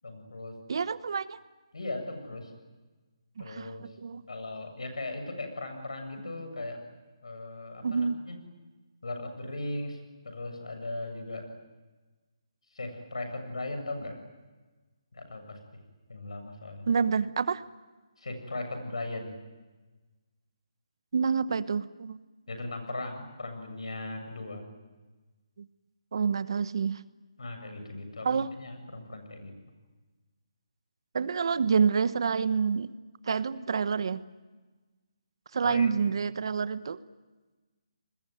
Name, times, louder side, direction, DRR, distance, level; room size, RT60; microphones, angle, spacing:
voice 1, 0.0-0.6 1.7-2.5 3.4-3.8 4.3-6.8 7.2-8.4 9.0-10.0 10.2-11.5 12.7-14.2 15.1-15.6 16.1-16.9 18.2-19.3 22.5-24.6 27.4-29.5 35.6-36.0, left 2 dB, 80° left, 6 dB, 7.6 m, -38 dB
voice 2, 0.7-1.4 3.4-4.2 7.8-8.2 16.9-17.6 21.1-22.2 25.6-25.7 26.1-27.0 28.2-28.5 31.1-32.9 33.2-34.2 35.5-37.0, right 6 dB, 55° right, 15 dB, 1.0 m, -28 dB
29.5 x 21.0 x 9.3 m, 1.3 s
hypercardioid pair, 155°, 3 cm